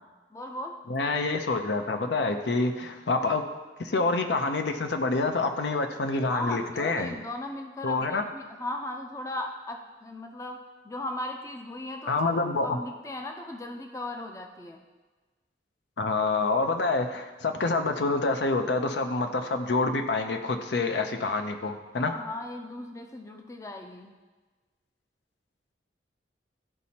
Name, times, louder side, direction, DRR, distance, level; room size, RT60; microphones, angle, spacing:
voice 1, 0.3-0.7 6.2-10.6 10.8-12.2 12.6-14.8 22.0-24.1, left 1 dB, 15° left, 3 dB, 0.4 m, -37 dB
voice 2, 0.9-3.4 3.8-7.2 7.8-8.2 12.1-12.8 16.0-22.1, left 3 dB, 80° left, 6 dB, 0.6 m, -27 dB
12.5 x 4.2 x 2.8 m, 1.3 s
head